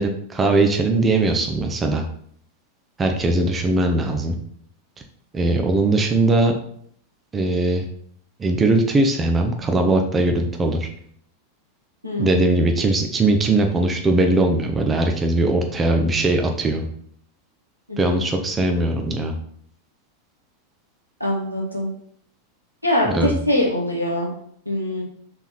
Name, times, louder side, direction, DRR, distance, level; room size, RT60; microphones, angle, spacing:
voice 1, 0.0-2.0 3.0-4.4 5.3-6.5 7.3-7.8 8.4-10.9 12.2-16.9 18.0-19.3 23.1-23.4, right 2 dB, 20° right, 4 dB, 0.8 m, -20 dB
voice 2, 12.0-12.5 17.9-18.2 21.2-21.9 22.8-24.3 24.6-25.0, left 1 dB, 90° right, -2 dB, 1.6 m, -23 dB
5.9 x 4.3 x 4.3 m, 0.64 s
figure-of-eight pair, 90°, 0 cm